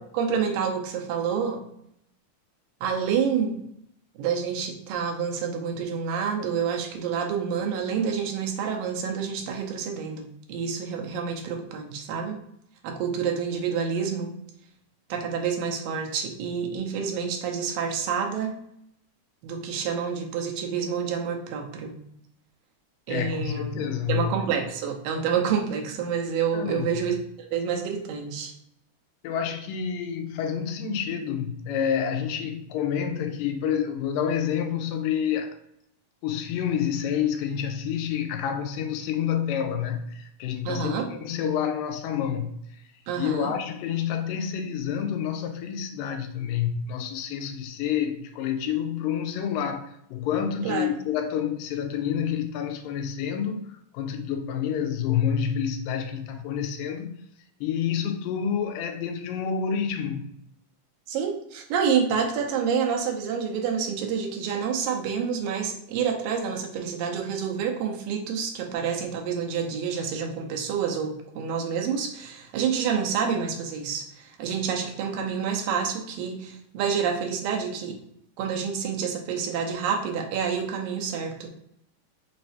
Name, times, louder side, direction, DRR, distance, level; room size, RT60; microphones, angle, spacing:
voice 1, 0.0-1.6 2.8-3.6 4.2-12.4 12.8-14.3 15.1-18.6 19.4-22.0 23.1-23.8 24.1-28.5 40.7-41.1 43.1-43.5 50.6-50.9 61.1-78.0 78.4-81.5, right 6 dB, 90° right, 2.5 m, -28 dB
voice 2, 23.1-24.3 26.5-26.9 29.2-35.6 36.2-42.6 43.2-53.7 53.9-57.2 57.6-60.3, left 8 dB, 85° left, 2.3 m, -28 dB
5.9 x 3.2 x 2.7 m
omnidirectional pair, 3.9 m